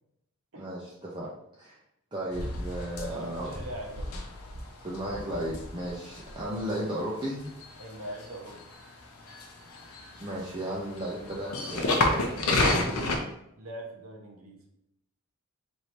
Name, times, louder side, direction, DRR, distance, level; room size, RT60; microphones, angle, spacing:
voice 1, 0.6-1.3 1.6-1.8 2.1-3.5 4.8-7.5 10.2-13.1, right 1 dB, 20° right, -7 dB, 0.5 m, -35 dB
sound 1, 2.3-13.2, left 2 dB, 80° left, 0.7 m, -32 dB
voice 2, 3.0-4.1 7.8-8.7 13.6-14.6, right 1 dB, 65° right, 1 dB, 0.8 m, -41 dB
3.2 x 2.7 x 4.3 m, 0.80 s
head